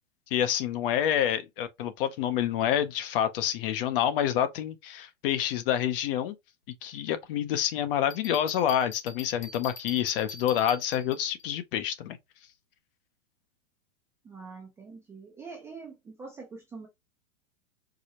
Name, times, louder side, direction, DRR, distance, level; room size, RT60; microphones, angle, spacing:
voice 1, 0.3-6.3 6.8-12.2, left 10 dB, 45° left, 0.6 m, -28 dB
Bell, 8.1-11.4, left 5 dB, 85° left, 1.2 m, -44 dB
voice 2, 14.2-16.9, right 4 dB, 10° right, 0.4 m, -44 dB
4.8 x 2.1 x 2.8 m
supercardioid pair, 150°, 38 cm